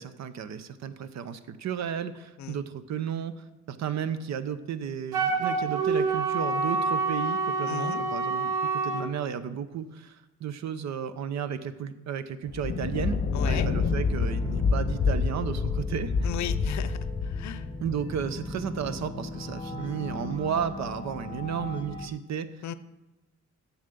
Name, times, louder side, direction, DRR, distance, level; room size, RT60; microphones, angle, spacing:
voice 1, 0.0-13.2 13.4-16.3 17.8-22.7, right 8 dB, 65° right, 13 dB, 0.8 m, -33 dB
Wind instrument woodwind instrument, 5.1-9.1, right 4 dB, 90° right, 1.2 m, -27 dB
voice 2, 7.7-8.0 13.3-13.7 16.2-17.7 22.6-22.7, left 9 dB, 65° left, 15 dB, 0.6 m, -36 dB
Thunder, 12.5-19.1, left 5 dB, 35° left, 0.8 m, -28 dB
sound 1, 13.7-22.1, left 2 dB, 15° left, 1.2 m, -39 dB
7.3 x 7.1 x 6.7 m, 1.0 s
cardioid pair, 90°, 30 cm